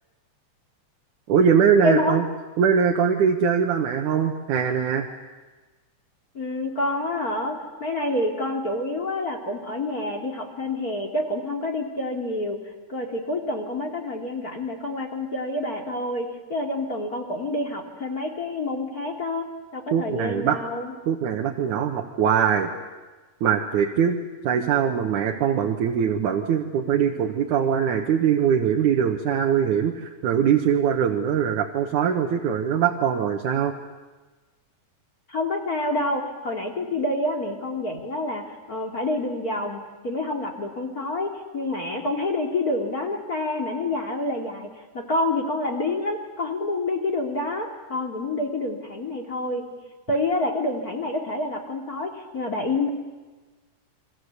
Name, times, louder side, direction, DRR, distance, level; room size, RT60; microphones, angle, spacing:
voice 1, 1.3-2.2 2.6-5.1 19.9-20.6 21.1-22.7 23.4-24.2 24.4-33.7, right 7 dB, 75° right, 2 dB, 2.8 m, -22 dB
voice 2, 1.8-2.2 6.3-12.6 12.9-19.5 19.7-20.9 35.3-49.6 50.1-52.9, left 2 dB, 30° left, 2 dB, 2.9 m, -28 dB
29.5 x 24.0 x 8.2 m, 1.3 s
omnidirectional pair, 3.6 m